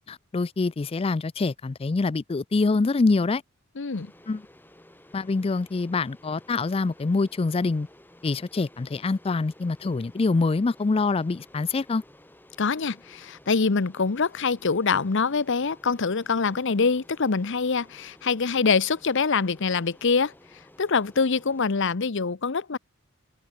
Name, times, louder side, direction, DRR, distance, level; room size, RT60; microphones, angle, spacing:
voice 1, 0.0-3.4 4.3-4.4 5.1-7.9 8.2-12.0, left 3 dB, 25° left, 0.4 m, -25 dB
voice 2, 3.8-4.1 12.6-20.3 20.8-22.8, left 5 dB, 60° left, 0.8 m, -24 dB
sound 1, 3.9-21.9, left 1 dB, 10° left, 2.3 m, -54 dB
head